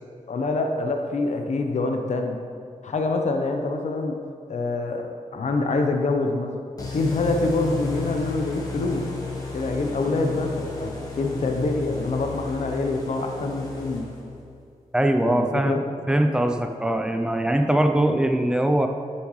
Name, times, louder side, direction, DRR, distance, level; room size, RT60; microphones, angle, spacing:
voice 1, 0.3-2.4 2.8-4.2 4.5-6.5 6.8-9.1 9.5-14.1 15.2-15.8, left 3 dB, 60° left, 4 dB, 0.8 m, -26 dB
sound 1, 6.8-14.4, left 3 dB, 25° left, 1.4 m, -33 dB
voice 2, 14.9-15.8 16.1-18.9, right 1 dB, 5° right, 5 dB, 0.5 m, -21 dB
11.0 x 7.1 x 3.2 m, 2.2 s
wide cardioid pair, 170°, 14 cm